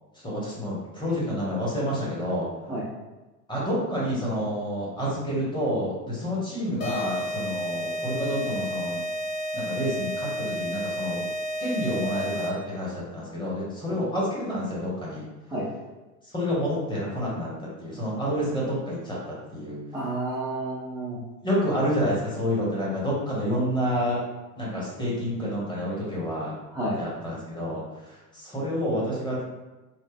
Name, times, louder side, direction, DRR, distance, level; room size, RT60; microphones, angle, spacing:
voice 1, 0.2-2.5 3.5-9.0 9.5-11.3 11.6-15.2 16.3-17.5 17.8-19.8 21.4-24.2 24.6-26.6 26.9-27.8 28.3-29.4, equal, 10° left, -6 dB, 1.4 m, -28 dB
sound 1, 6.8-12.8, equal, 30° left, 0.6 m, -31 dB
voice 2, 19.9-21.2 26.7-27.0, right 1 dB, 5° right, -8 dB, 0.6 m, -30 dB
3.3 x 2.0 x 3.5 m, 1.1 s
hypercardioid pair, 85°, 49 cm